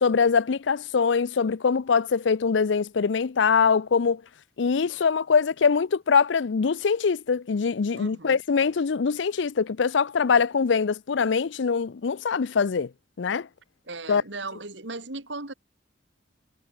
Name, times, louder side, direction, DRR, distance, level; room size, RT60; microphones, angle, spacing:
voice 1, 0.0-4.2 4.6-12.9 13.2-13.5 14.1-14.2, left 5 dB, 70° left, 0.5 m, -23 dB
voice 2, 7.9-8.4 10.3-10.4 13.9-15.5, right 3 dB, 70° right, 3.4 m, -37 dB
head